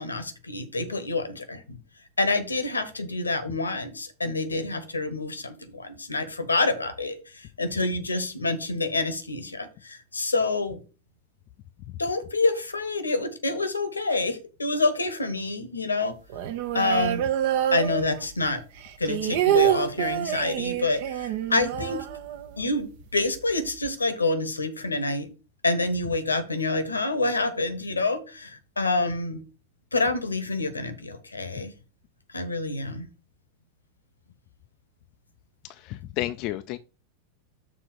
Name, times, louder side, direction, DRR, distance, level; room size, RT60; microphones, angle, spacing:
voice 1, 0.0-1.8 2.2-10.8 12.0-16.2 16.7-17.2 17.7-18.6 19.0-22.0 22.6-25.3 25.6-29.4 29.9-31.7 32.3-33.1, left 3 dB, 80° left, 1.1 m, -27 dB
sound 1, 16.3-18.5 18.8-22.7 23.0-23.1 23.4-23.9, right 11 dB, 50° right, 0.8 m, -27 dB
voice 2, 35.8-36.8, left 15 dB, 40° left, 0.4 m, -31 dB
6.5 x 3.8 x 6.4 m
figure-of-eight pair, 90°, 0 cm